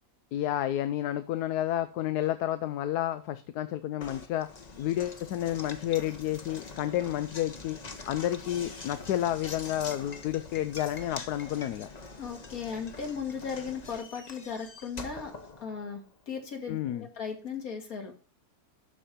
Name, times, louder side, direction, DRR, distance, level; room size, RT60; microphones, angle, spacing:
voice 1, 0.3-4.5 4.8-7.8 8.1-11.9 16.7-17.1, left 12 dB, 85° left, 1.2 m, -30 dB
Knock, 4.0-16.2, left 3 dB, 30° left, 0.9 m, -44 dB
voice 2, 12.2-15.3 15.6-18.1, left 6 dB, 65° left, 2.3 m, -37 dB
12.5 x 4.4 x 5.0 m
omnidirectional pair, 1.7 m